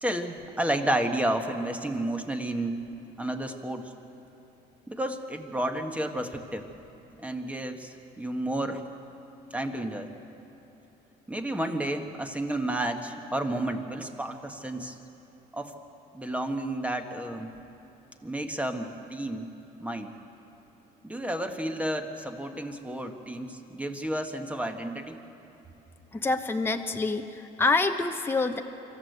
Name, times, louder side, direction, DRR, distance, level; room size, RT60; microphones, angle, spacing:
voice 1, 0.0-2.8 3.2-3.9 4.9-6.7 7.2-8.8 9.5-10.1 11.3-14.9 15.5-15.7 16.1-17.5 18.2-19.5 19.8-20.2 21.0-25.2, right 1 dB, 10° right, 5 dB, 1.6 m, -31 dB
voice 2, 26.1-28.6, left 3 dB, 15° left, 5 dB, 1.0 m, -26 dB
26.0 x 14.0 x 8.2 m, 3.0 s
cardioid pair, 110°, 17 cm